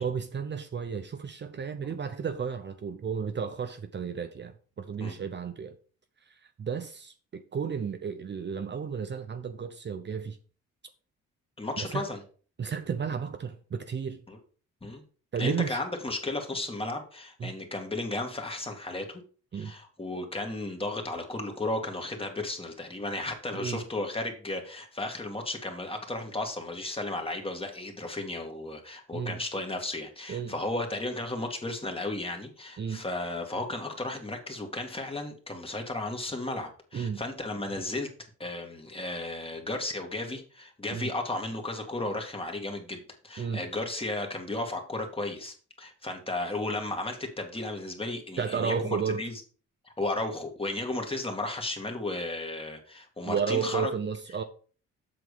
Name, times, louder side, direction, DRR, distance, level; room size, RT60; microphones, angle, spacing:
voice 1, 0.0-5.7 6.3-10.4 11.8-12.0 12.6-14.2 15.3-15.8 17.4-17.5 19.5-19.7 23.5-23.8 29.1-29.4 30.3-30.5 32.8-33.0 36.9-37.2 40.9-41.1 43.4-43.6 48.4-49.3 53.2-54.4, right 6 dB, 35° right, 0.8 m, -33 dB
voice 2, 11.6-12.2 14.3-14.4 14.8-15.0 15.4-19.2 19.5-38.1 38.4-49.4 49.8-53.9, left 2 dB, 20° left, 2.2 m, -34 dB
7.8 x 6.0 x 5.1 m
cardioid pair, 90°, 30 cm